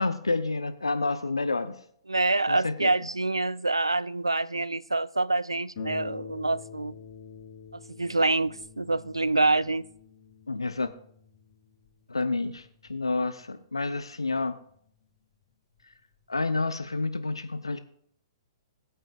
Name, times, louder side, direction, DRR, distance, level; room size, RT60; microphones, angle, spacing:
voice 1, 0.0-1.7 2.5-2.9 10.5-10.9 12.1-14.6 16.3-17.8, left 3 dB, 85° left, 11 dB, 0.7 m, -29 dB
voice 2, 2.1-6.9 8.0-9.9, right 2 dB, 90° right, 20 dB, 0.4 m, -26 dB
Harp, 5.8-14.9 15.8-15.9 16.3-16.4, left 6 dB, 55° left, 3.0 m, -46 dB
22.0 x 8.9 x 2.4 m, 0.66 s
figure-of-eight pair, 115°, 3 cm